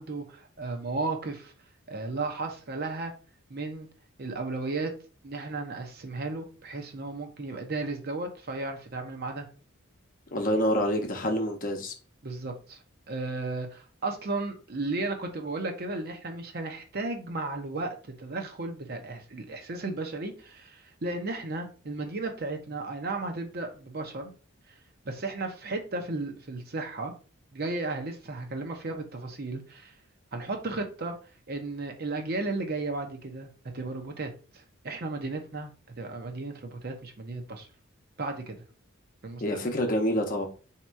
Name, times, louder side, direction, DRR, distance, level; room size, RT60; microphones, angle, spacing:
voice 1, 0.0-1.5 1.9-3.1 3.5-3.9 4.2-4.9 5.2-9.5 12.2-12.8 13.1-24.3 24.7-24.8 25.0-27.1 27.5-29.9 30.3-31.1 31.5-33.5 33.7-37.7 38.2-38.6 39.2-39.6, right 3 dB, 50° right, 0.7 m, -34 dB
voice 2, 10.3-11.9 39.4-40.5, equal, 40° left, 0.8 m, -27 dB
3.6 x 2.9 x 4.6 m
head